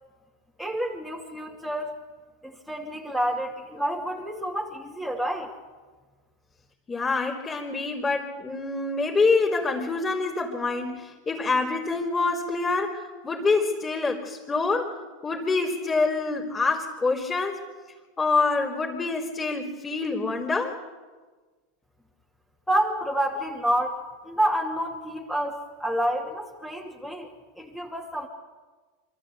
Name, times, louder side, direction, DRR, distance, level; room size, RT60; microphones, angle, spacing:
voice 1, 0.6-2.0 2.4-5.5 22.7-24.0 24.2-27.3 27.6-28.3, right 1 dB, 5° left, -2 dB, 2.5 m, -28 dB
voice 2, 6.9-14.9 15.2-17.6 18.2-20.8, left 3 dB, 20° left, -7 dB, 3.6 m, -26 dB
24.0 x 14.0 x 8.4 m, 1.4 s
hypercardioid pair, 110°, 0 cm